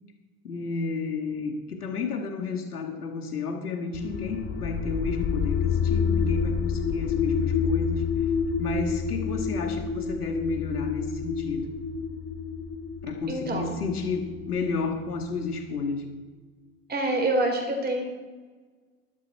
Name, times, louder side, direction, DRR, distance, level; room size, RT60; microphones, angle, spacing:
voice 1, 0.4-8.1 8.6-11.7 13.0-16.0, left 4 dB, 80° left, 4 dB, 2.1 m, -31 dB
sound 1, 3.9-15.7, left 6 dB, 25° left, 0.9 m, -29 dB
voice 2, 13.3-13.7 16.9-18.0, right 2 dB, 20° right, 3 dB, 3.8 m, -26 dB
13.0 x 12.5 x 4.4 m, 1.4 s
figure-of-eight pair, 85°, 45 cm